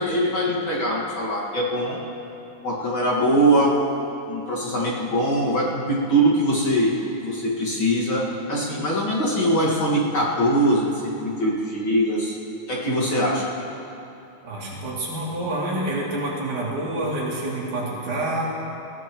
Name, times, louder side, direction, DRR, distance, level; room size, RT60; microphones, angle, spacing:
voice 1, 0.0-2.0 2.6-3.7 4.3-8.2 8.5-12.3 12.7-13.4, right 1 dB, 45° left, -6 dB, 2.3 m, -22 dB
voice 2, 14.4-18.5, right 1 dB, 75° right, -5 dB, 4.1 m, -27 dB
21.0 x 16.0 x 3.0 m, 2.8 s
omnidirectional pair, 3.5 m